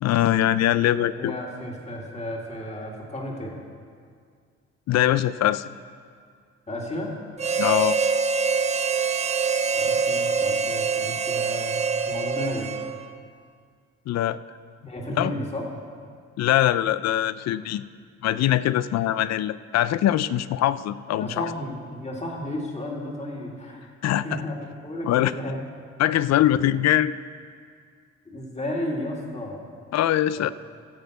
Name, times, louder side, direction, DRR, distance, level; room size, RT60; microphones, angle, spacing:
voice 1, 0.0-1.3 4.9-5.6 7.6-8.0 14.1-14.4 15.2-15.3 16.4-17.8 18.2-21.5 24.0-24.4 25.0-25.3 26.0-27.2 29.9-30.5, left 12 dB, 60° left, 16 dB, 0.5 m, -22 dB
voice 2, 1.1-3.6 6.7-7.1 9.7-12.7 14.8-15.7 21.2-25.6 28.3-29.6 30.3-30.4, left 1 dB, 20° left, -1 dB, 2.3 m, -33 dB
Harmonica, 7.4-13.2, right 5 dB, 20° right, 0.5 m, -25 dB
14.5 x 5.2 x 7.9 m, 2.1 s
cardioid pair, 90°, 30 cm